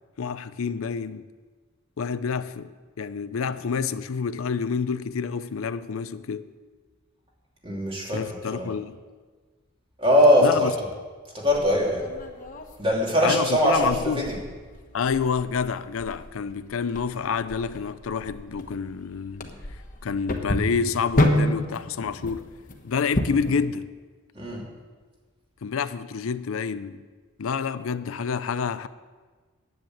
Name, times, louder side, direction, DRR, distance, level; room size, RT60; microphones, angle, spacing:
voice 1, 0.2-1.2 2.0-2.7 3.0-6.5 8.1-9.0 10.4-10.7 13.2-14.3 14.9-19.5 20.0-22.5 22.8-23.9 25.6-27.0 27.4-28.9, left 6 dB, 90° left, 0.5 m, -28 dB
voice 2, 7.6-8.2 8.5-8.7 10.0-10.7 11.3-12.0 12.8-14.4 24.3-24.6, equal, 25° right, 2.7 m, -21 dB
sound 1, 11.5-23.6, left 1 dB, 40° left, 1.2 m, -30 dB
10.5 x 8.9 x 7.8 m
head